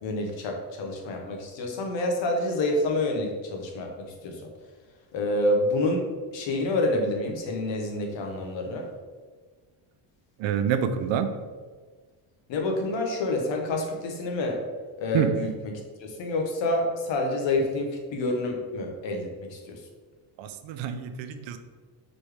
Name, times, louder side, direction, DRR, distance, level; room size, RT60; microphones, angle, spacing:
voice 1, 0.0-4.5 5.1-6.0 6.3-8.9 12.5-14.6 15.0-15.7 16.0-19.8, left 2 dB, 65° left, 2 dB, 1.0 m, -28 dB
voice 2, 10.4-11.3 15.1-15.3 20.4-21.6, right 8 dB, 70° right, 9 dB, 0.5 m, -27 dB
4.2 x 3.1 x 3.4 m, 1.4 s
cardioid pair, 125°, 48 cm